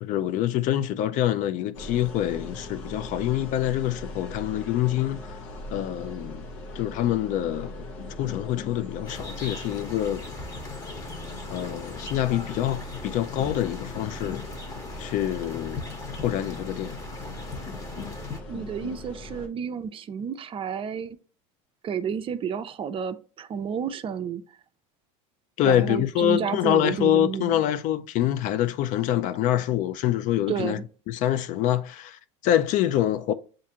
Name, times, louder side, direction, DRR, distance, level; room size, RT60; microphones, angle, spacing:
voice 1, 0.0-5.2 5.7-6.5 6.8-7.8 8.2-10.3 11.5-14.5 15.0-15.8 16.2-17.0 25.6-30.8 31.1-33.3, left 12 dB, 50° left, 0.4 m, -25 dB
sound 1, 1.7-19.5, left 2 dB, 80° left, 0.9 m, -40 dB
sound 2, 9.1-18.4, left 3 dB, 20° left, 1.0 m, -39 dB
voice 2, 18.5-21.2 21.8-24.4 25.6-27.6 30.5-30.8, right 7 dB, 35° right, 0.5 m, -31 dB
7.1 x 2.5 x 2.8 m
hypercardioid pair, 95°, 16 cm